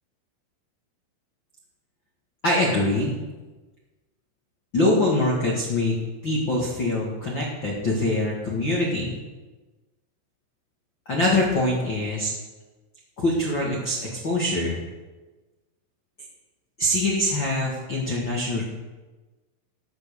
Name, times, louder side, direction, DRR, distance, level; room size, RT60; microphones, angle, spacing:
voice 1, 2.4-3.1 4.7-5.9 6.2-9.1 11.1-12.3 13.2-14.8 16.8-18.6, left 1 dB, 85° left, -3 dB, 1.0 m, -24 dB
16.5 x 5.7 x 6.9 m, 1.2 s
omnidirectional pair, 5.8 m